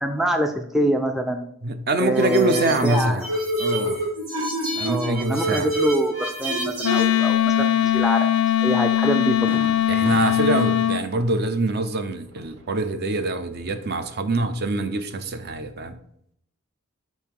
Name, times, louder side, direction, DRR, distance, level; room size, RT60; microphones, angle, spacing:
voice 1, 0.0-1.5 2.0-3.3 4.8-9.3, equal, ahead, 5 dB, 0.4 m, -25 dB
voice 2, 1.6-3.3 3.6-4.0 4.8-5.7 9.9-16.0, right 2 dB, 50° right, 9 dB, 0.6 m, -24 dB
sound 1, 2.2-7.1, right 1 dB, 90° right, 2.5 m, -27 dB
Wind instrument woodwind instrument, 6.8-11.0, left 11 dB, 80° left, 0.5 m, -20 dB
Fireworks, 8.4-8.6 9.0-9.1 9.5-13.2 13.6-14.4, right 1 dB, 70° right, 1.2 m, -41 dB
5.6 x 4.4 x 4.6 m, 0.72 s
head